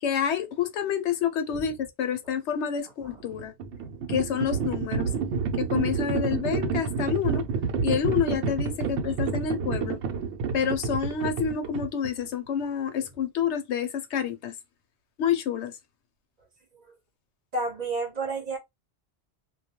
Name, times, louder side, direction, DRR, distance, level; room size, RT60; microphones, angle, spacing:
voice 1, 0.0-3.5 4.1-5.1 5.6-7.5 7.8-10.0 10.5-14.5 15.2-15.7, left 8 dB, 80° left, 0.9 m, -28 dB
voice 2, 3.0-3.4 8.8-8.9 9.2-9.5 17.5-18.6, right 3 dB, 45° right, 0.7 m, -32 dB
Livestock farm animals working animals, 3.2-12.3, right 5 dB, 90° right, 0.9 m, -29 dB
2.3 x 2.2 x 2.8 m
omnidirectional pair, 1.1 m